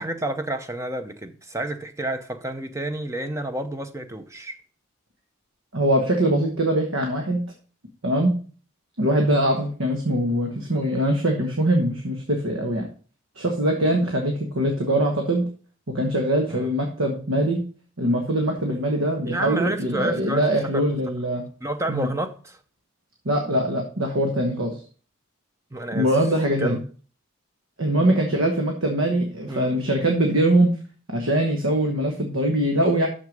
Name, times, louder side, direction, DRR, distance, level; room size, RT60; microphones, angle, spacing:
voice 1, 0.0-4.6 16.5-16.7 19.3-20.4 20.7-20.8 21.6-22.6 25.7-26.1 26.6-26.8 28.1-28.2 29.5-29.8, right 1 dB, 15° right, 0.6 m, -30 dB
voice 2, 5.7-7.4 8.0-8.4 9.0-12.9 13.4-15.5 15.9-17.6 18.0-21.5 21.9-22.1 23.2-24.8 25.9-26.8 27.8-30.7 31.1-33.1, right 1 dB, 75° right, 1.2 m, -22 dB
6.6 x 6.3 x 5.2 m
head